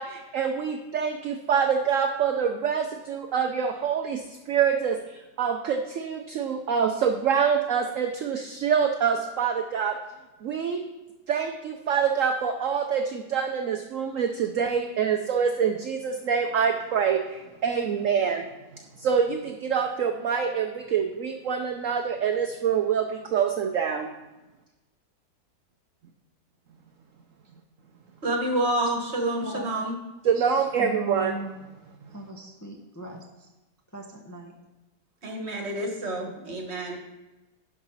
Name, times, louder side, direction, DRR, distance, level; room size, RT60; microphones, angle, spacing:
voice 1, 0.0-10.0 10.4-10.8 11.3-18.4 19.0-24.1 30.2-31.3, right 7 dB, 60° right, 4 dB, 0.9 m, -26 dB
voice 2, 28.2-29.9 35.2-37.0, right 1 dB, 40° right, 2 dB, 1.6 m, -28 dB
voice 3, 29.1-29.7 30.3-31.6 32.1-33.5 33.9-34.6, right 2 dB, 15° left, 0 dB, 0.8 m, -38 dB
11.0 x 5.0 x 5.6 m, 1.1 s
omnidirectional pair, 1.9 m